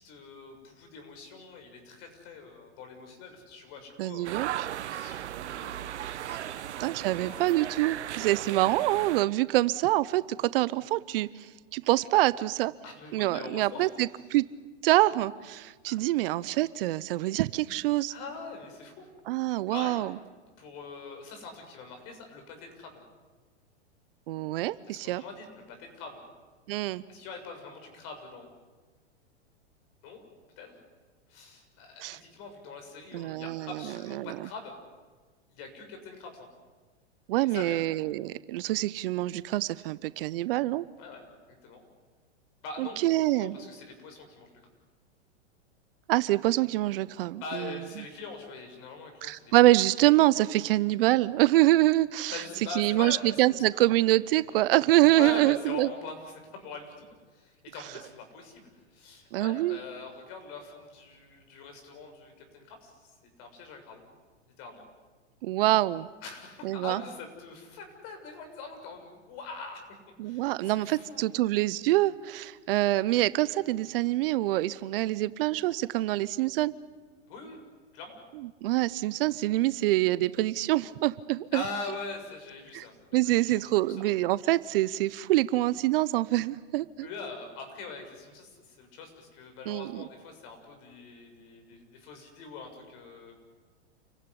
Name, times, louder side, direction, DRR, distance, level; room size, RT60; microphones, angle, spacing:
voice 1, 0.0-4.3 4.8-7.5 12.8-13.9 15.9-16.0 18.1-19.1 19.7-20.0 20.6-23.0 24.9-26.2 27.1-28.5 30.0-30.3 30.6-30.7 31.3-34.7 35.5-36.5 37.4-37.8 41.0-41.2 41.6-41.9 42.6-43.0 43.4-44.5 47.4-49.5 52.3-53.9 54.4-54.6 55.1-57.1 57.3-63.0 63.2-64.1 64.6-64.8 66.2-69.8 70.2-71.2 77.3-77.6 77.9-78.2 81.5-83.7 84.0-84.2 87.0-93.3, left 4 dB, 45° left, 5 dB, 6.9 m, -43 dB
voice 2, 4.0-4.7 6.8-12.7 13.1-14.4 14.8-18.1 19.3-20.1 24.3-25.2 26.7-27.0 32.0-32.2 33.1-33.7 34.2-34.4 37.3-40.9 42.8-43.5 46.1-47.7 49.2-52.4 52.8-55.9 59.3-59.8 65.4-66.1 66.6-67.0 70.2-76.7 78.6-81.6 82.7-82.8 83.1-87.1 89.7-90.0, right 17 dB, 55° right, 17 dB, 0.8 m, -25 dB
sound 1, 4.2-9.2, right 12 dB, 75° right, 1.1 m, -36 dB
29.0 x 16.0 x 9.8 m, 1.3 s
hypercardioid pair, 120°, 35 cm